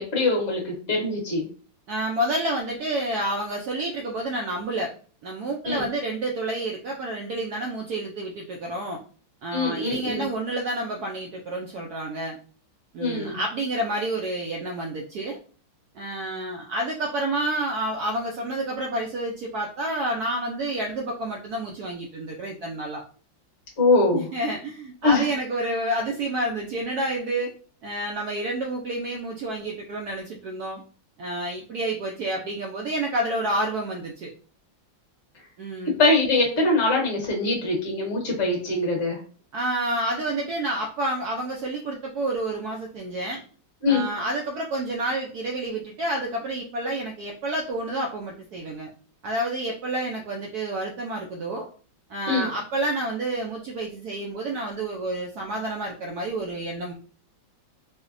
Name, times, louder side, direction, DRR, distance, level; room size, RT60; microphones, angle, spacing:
voice 1, 0.0-1.4 5.6-5.9 9.5-10.2 13.0-13.4 23.8-24.2 25.0-25.3 36.0-39.2 43.8-44.1 52.3-52.5, left 2 dB, 35° left, -2 dB, 1.4 m, -23 dB
voice 2, 1.9-4.9 5.2-9.0 9.4-12.4 12.9-15.4 15.9-23.0 24.1-27.5 27.8-30.8 31.2-34.3 35.6-36.0 39.5-43.4 43.9-48.9 49.2-51.7 52.1-56.9, right 1 dB, 80° right, 0 dB, 0.8 m, -29 dB
4.8 x 2.1 x 2.5 m, 0.41 s
omnidirectional pair, 2.2 m